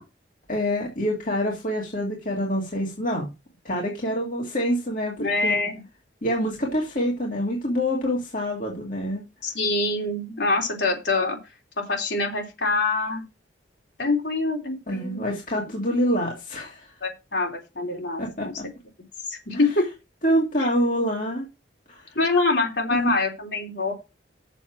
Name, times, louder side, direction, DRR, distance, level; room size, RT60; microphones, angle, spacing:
voice 1, 0.5-3.3 3.6-5.6 6.2-9.2 14.9-16.9 18.2-18.7 19.5-19.7 20.2-21.5 21.9-22.1 22.9-23.1, equal, 45° left, -1 dB, 2.1 m, -26 dB
voice 2, 5.2-5.8 9.4-11.4 11.8-13.2 14.0-15.3 15.5-15.6 17.0-18.5 19.3-19.9 20.6-20.7 22.1-23.9, left 3 dB, 65° left, 1 dB, 3.3 m, -25 dB
7.2 x 6.9 x 6.0 m, 0.27 s
head